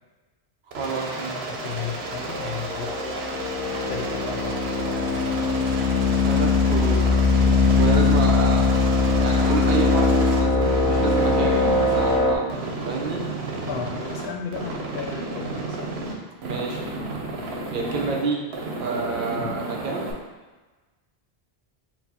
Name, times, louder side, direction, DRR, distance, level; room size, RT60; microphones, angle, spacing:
voice 1, 0.7-1.4 6.2-7.1 7.8-12.5 12.8-13.2 16.4-16.8 17.7-18.5 18.8-20.1, right 4 dB, 60° right, 0 dB, 0.7 m, -29 dB
Aircraft, 0.7-12.2 12.5-14.3 14.5-16.1 16.4-18.2 18.5-20.1, right 2 dB, 90° right, 0.9 m, -32 dB
voice 2, 1.5-3.2 3.9-4.8 5.1-5.3 7.7-7.9 13.7-15.9 19.4-19.5, left 6 dB, 85° left, 2 dB, 0.8 m, -34 dB
sound 1, 2.3-12.4, left 4 dB, 55° left, 0.7 m, -21 dB
4.4 x 2.0 x 4.1 m, 1.2 s
omnidirectional pair, 1.0 m